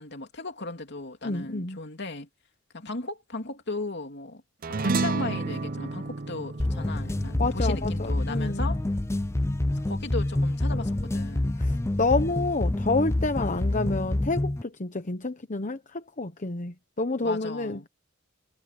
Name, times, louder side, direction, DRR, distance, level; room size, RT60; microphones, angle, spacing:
voice 1, 0.0-2.3 2.7-4.4 4.7-8.8 9.7-11.6 17.2-17.9, left 2 dB, 55° left, 2.9 m, -36 dB
voice 2, 1.2-1.8 7.4-8.7 11.6-17.9, left 3 dB, 40° left, 1.0 m, -29 dB
sound 1, 4.6-9.3, right 3 dB, 45° right, 0.7 m, -32 dB
sound 2, 6.6-14.6, left 1 dB, 15° left, 0.4 m, -27 dB
head